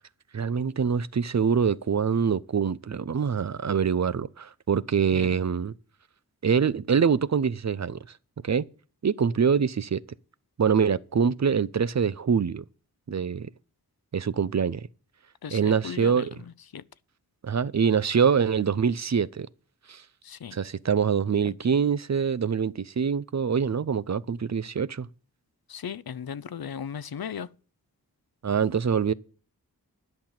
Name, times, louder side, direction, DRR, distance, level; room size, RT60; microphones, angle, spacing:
voice 1, 0.3-5.7 6.4-8.0 8.4-8.7 9.0-10.0 10.6-12.6 13.1-13.5 14.1-14.9 15.5-16.4 17.4-19.5 19.9-20.0 20.5-25.1 28.4-29.1, right 6 dB, 50° right, 0.5 m, -24 dB
voice 2, 15.4-16.3 16.7-16.8 20.2-20.6 21.5-21.6 25.7-27.5, left 7 dB, 75° left, 0.6 m, -36 dB
11.0 x 5.9 x 8.9 m
wide cardioid pair, 55°, 37 cm